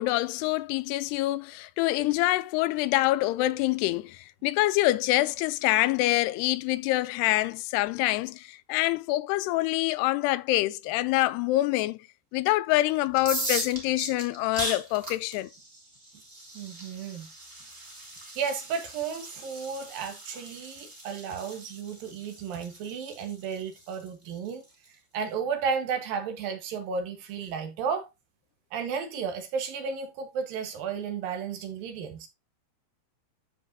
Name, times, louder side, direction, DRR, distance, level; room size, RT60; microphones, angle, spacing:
voice 1, 0.0-12.1 12.3-15.5, left 17 dB, 90° left, 2.7 m, -26 dB
sound 1, 13.1-24.9, right 1 dB, 15° right, 2.6 m, -39 dB
voice 2, 16.5-17.3 18.4-24.7 25.1-28.1 28.7-32.3, right 6 dB, 65° right, 3.0 m, -33 dB
12.5 x 5.3 x 2.7 m
omnidirectional pair, 4.6 m